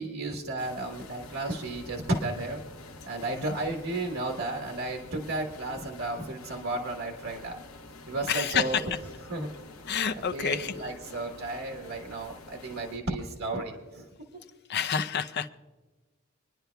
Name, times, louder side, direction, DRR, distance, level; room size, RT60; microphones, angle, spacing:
voice 1, 0.0-2.6 3.0-7.6 8.1-8.8 9.3-9.5 10.3-14.1, right 2 dB, 85° right, 2 dB, 1.4 m, -33 dB
sound 1, 0.6-13.0, left 2 dB, 75° left, 0.9 m, -48 dB
voice 2, 8.2-9.0 9.9-11.0 14.7-15.5, left 7 dB, 50° left, 10 dB, 0.5 m, -29 dB
26.5 x 10.0 x 2.3 m, 1.3 s
head